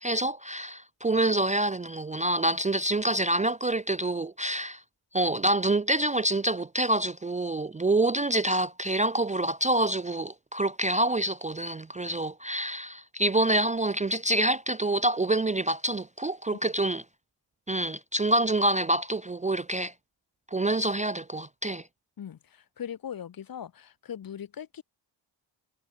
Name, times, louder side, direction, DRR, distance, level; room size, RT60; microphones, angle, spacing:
voice 1, 0.0-4.8 5.1-17.0 17.7-19.9 20.5-21.8, right 1 dB, 15° right, 0.6 m, -27 dB
voice 2, 22.2-24.8, left 9 dB, 45° left, 1.5 m, -40 dB
wide cardioid pair, 145°, 47 cm